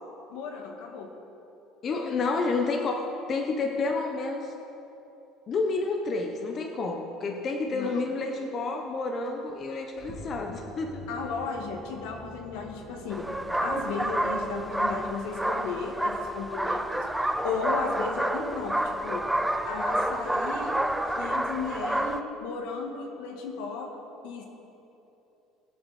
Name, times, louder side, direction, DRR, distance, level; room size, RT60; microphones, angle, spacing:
voice 1, 0.3-1.1 7.7-8.0 11.1-13.3 13.6-19.2 19.7-20.7 21.2-23.9 24.2-24.4, left 5 dB, 80° left, 2 dB, 1.9 m, -35 dB
voice 2, 1.8-4.5 5.5-11.1, left 3 dB, 35° left, 3 dB, 0.9 m, -30 dB
sound 1, 9.2-14.8, right 1 dB, 30° right, 3.1 m, -47 dB
sound 2, 13.1-22.2, right 1 dB, 5° right, 0.5 m, -29 dB
20.5 x 7.3 x 4.3 m, 2.9 s
cardioid pair, 135°, 0 cm